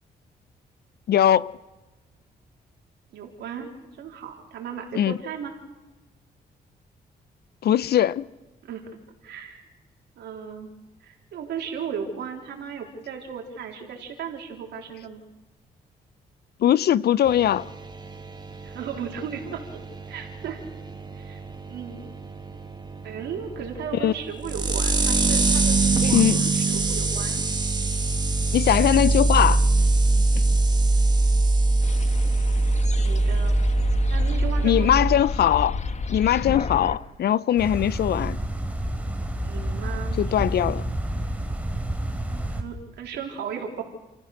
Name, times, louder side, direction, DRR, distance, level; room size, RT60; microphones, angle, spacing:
voice 1, 1.1-1.5 4.9-5.2 7.6-8.2 16.6-17.7 24.0-24.1 26.0-26.5 28.5-29.7 34.6-35.8 36.1-38.4 40.2-40.8, left 11 dB, 70° left, 0.7 m, -21 dB
voice 2, 3.1-5.5 8.6-8.9 9.2-9.6 10.2-10.7 11.0-15.2 18.6-19.8 20.1-20.6 21.1-22.1 23.0-27.4 33.0-34.9 39.4-40.5 42.5-43.8, right 7 dB, 85° right, 3.7 m, -36 dB
sound 1, 17.3-35.2, right 2 dB, 25° right, 2.0 m, -23 dB
sound 2, 31.8-37.0, left 4 dB, 40° left, 1.3 m, -31 dB
sound 3, 37.6-42.6, right 1 dB, 10° right, 3.1 m, -29 dB
29.5 x 14.5 x 6.6 m
cardioid pair, 75°, 17 cm